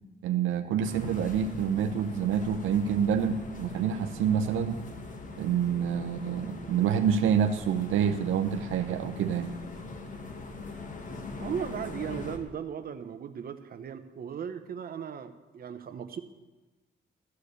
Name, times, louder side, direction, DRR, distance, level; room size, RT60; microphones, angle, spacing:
voice 1, 0.2-4.8 5.4-9.6, right 8 dB, 80° right, 6 dB, 0.7 m, -27 dB
sound 1, 0.8-12.4, left 3 dB, 40° left, 1.5 m, -42 dB
voice 2, 11.4-16.2, right 8 dB, 50° right, 8 dB, 0.9 m, -37 dB
13.5 x 4.8 x 8.2 m, 1.2 s
cardioid pair, 90°, 20 cm